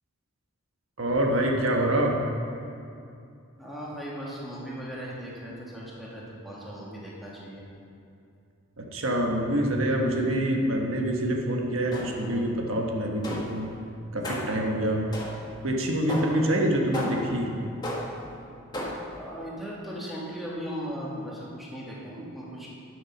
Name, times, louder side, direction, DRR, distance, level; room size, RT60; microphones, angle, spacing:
voice 1, 1.0-2.2 8.8-13.7 14.1-15.0 15.6-17.5, right 1 dB, 80° right, 0 dB, 1.3 m, -26 dB
voice 2, 3.6-7.7 16.1-16.5 19.1-22.7, equal, ahead, -7 dB, 2.1 m, -38 dB
sound 1, 11.9-12.4 13.2-13.7 14.2-14.7 15.1-15.6 16.1-16.5 16.9-17.4 17.8-18.3 18.7-19.2, left 1 dB, 20° left, 1.6 m, -34 dB
11.5 x 6.4 x 6.0 m, 2.5 s
head